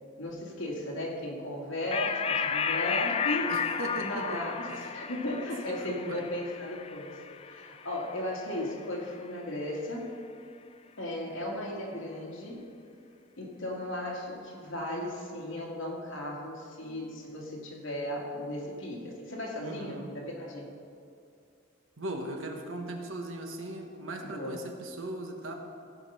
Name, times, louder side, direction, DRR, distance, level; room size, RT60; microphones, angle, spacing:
voice 1, 0.2-3.5 4.0-10.1 11.0-12.7 13.4-20.7 24.2-24.6, left 1 dB, 80° left, -2 dB, 2.2 m, -36 dB
sound 1, 1.9-8.8, left 6 dB, 30° left, 0.3 m, -33 dB
voice 2, 3.5-4.9 5.8-6.2 19.6-20.1 22.0-25.5, right 1 dB, 85° right, 3 dB, 1.4 m, -38 dB
16.0 x 5.4 x 5.6 m, 2.5 s
head